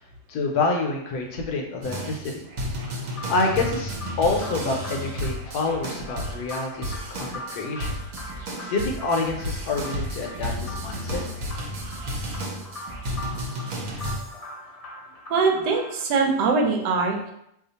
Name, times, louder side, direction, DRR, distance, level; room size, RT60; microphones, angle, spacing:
voice 1, 0.3-2.5 3.3-7.9 8.7-11.2, left 3 dB, 75° left, 1 dB, 1.0 m, -27 dB
sound 1, 1.8-14.2, equal, 60° right, 1.0 m, -33 dB
sound 2, 3.1-16.1, left 1 dB, 35° left, 0.6 m, -41 dB
sound 3, 8.0-14.5, right 1 dB, 30° right, 0.3 m, -42 dB
voice 2, 15.3-17.3, right 4 dB, 80° right, 2 dB, 1.2 m, -22 dB
2.8 x 2.3 x 3.9 m, 0.78 s
omnidirectional pair, 1.8 m